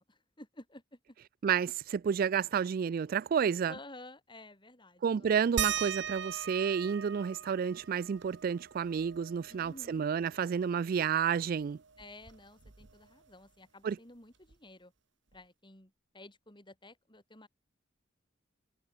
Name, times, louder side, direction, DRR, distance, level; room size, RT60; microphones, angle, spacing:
voice 1, 0.1-1.0 3.7-5.3 9.5-10.1 12.0-14.9 15.3-17.5, left 2 dB, 25° left, 7.4 m, -52 dB
voice 2, 1.4-3.7 5.0-11.8 13.8-14.0, right 7 dB, 50° right, 0.3 m, -30 dB
sound 1, 5.6-10.7 11.1-11.2 11.5-13.2 14.5-14.6 15.3-15.4, right 8 dB, 70° right, 1.3 m, -40 dB
head